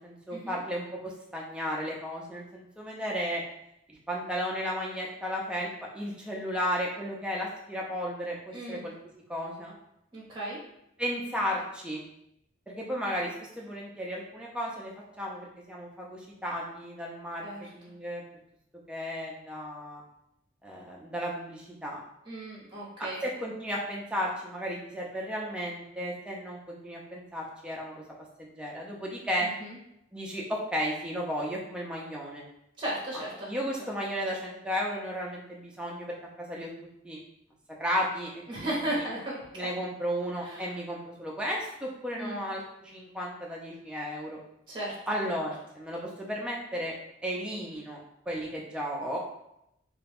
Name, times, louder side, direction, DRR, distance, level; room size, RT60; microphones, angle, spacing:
voice 1, 0.0-3.4 3.9-5.7 5.9-8.9 9.3-9.7 11.0-12.0 12.7-17.4 17.7-18.2 18.9-20.0 20.6-22.0 23.2-28.0 28.4-29.5 30.1-32.4 33.5-36.7 37.0-37.2 37.8-38.3 39.6-44.4 45.1-46.9 47.2-48.0 48.3-49.2, equal, 5° right, -3 dB, 0.4 m, -34 dB
voice 2, 8.5-8.9 10.1-10.6 17.4-17.7 22.2-23.2 29.4-29.8 32.8-33.5 33.8-33.9 38.5-39.7 40.4-40.8 42.1-42.4 44.7-45.0, right 1 dB, 25° right, -5 dB, 0.8 m, -36 dB
2.4 x 2.2 x 3.3 m, 0.81 s
head